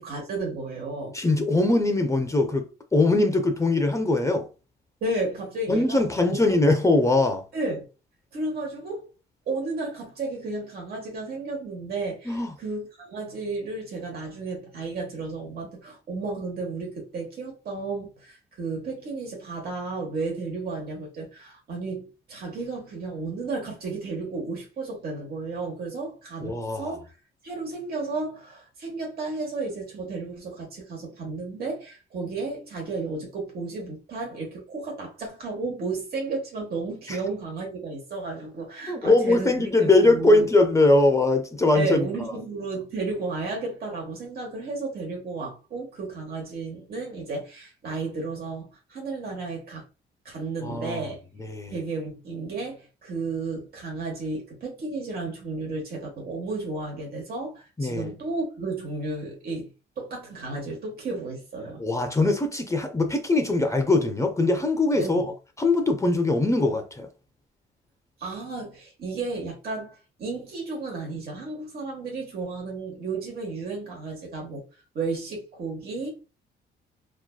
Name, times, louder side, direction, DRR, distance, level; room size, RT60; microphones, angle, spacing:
voice 1, 0.0-1.1 5.0-6.4 7.5-7.9 8.3-9.1 9.5-27.2 27.4-40.5 41.7-49.8 50.2-51.2 51.7-59.7 60.0-61.8 64.9-65.3 68.2-74.6 74.9-76.1, right 3 dB, 50° right, 1.0 m, -33 dB
voice 2, 1.1-4.4 5.7-7.4 12.3-12.5 26.4-26.9 37.1-37.2 38.9-42.1 50.6-51.1 51.4-51.7 57.8-58.1 61.8-65.2 65.6-67.1, left 2 dB, 15° left, 0.4 m, -21 dB
2.5 x 2.3 x 2.2 m
cardioid pair, 90°, 20 cm